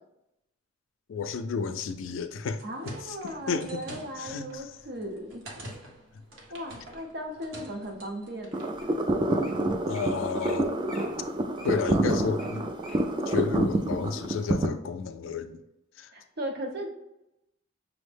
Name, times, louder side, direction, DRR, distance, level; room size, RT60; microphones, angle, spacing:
voice 1, 1.1-3.2 3.5-3.8 4.2-4.7 9.9-10.7 11.6-12.7 13.3-15.6 16.0-16.1, left 5 dB, 80° left, 9 dB, 0.4 m, -32 dB
sound 1, 2.4-8.7, equal, 80° right, 1.0 m, -46 dB
voice 2, 2.6-5.4 6.5-8.8 16.1-16.9, right 1 dB, 55° right, 3 dB, 0.7 m, -37 dB
Wild animals, 3.1-3.8 4.5-4.8 5.3-5.8 6.3-7.2 7.8-7.9 8.5-8.6 8.8-9.0 9.2-9.5 9.9-10.1 10.4-10.6 10.9-13.0 13.5-13.6, left 2 dB, ahead, 0.8 m, -49 dB
sound 2, 8.5-14.7, right 2 dB, 25° right, 0.3 m, -27 dB
6.1 x 2.1 x 3.2 m, 0.89 s
head